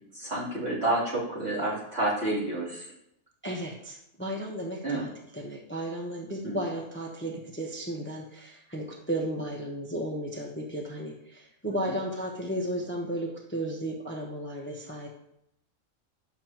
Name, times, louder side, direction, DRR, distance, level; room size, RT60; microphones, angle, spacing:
voice 1, 0.1-2.9 4.8-5.0 6.4-6.6, right 2 dB, 55° right, -8 dB, 3.5 m, -29 dB
voice 2, 3.4-15.1, right 1 dB, 10° left, -1 dB, 1.0 m, -34 dB
11.0 x 6.8 x 3.0 m, 0.77 s
omnidirectional pair, 1.4 m